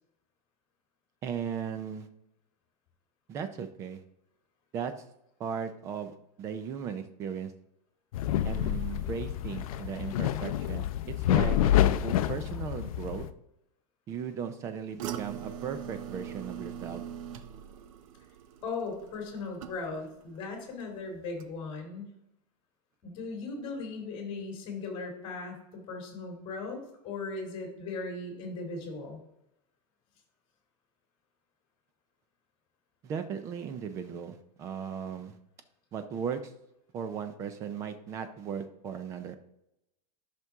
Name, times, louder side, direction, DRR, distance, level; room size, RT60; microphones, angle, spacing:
voice 1, 1.2-2.1 3.3-4.0 4.7-4.9 5.4-7.5 8.4-11.6 12.0-13.3 14.1-17.0 33.0-35.4 35.9-36.4 36.9-39.3, right 7 dB, 15° right, 10 dB, 0.4 m, -37 dB
sound 1, 8.1-13.3, left 11 dB, 55° left, 0.5 m, -28 dB
sound 2, 15.0-20.2 20.5-21.0 21.4-21.5, right 9 dB, 55° right, 0.7 m, -41 dB
voice 2, 18.6-22.1 23.0-29.2, left 3 dB, 25° left, 1 dB, 2.5 m, -38 dB
11.0 x 5.9 x 3.5 m, 0.85 s
supercardioid pair, 170°, 21 cm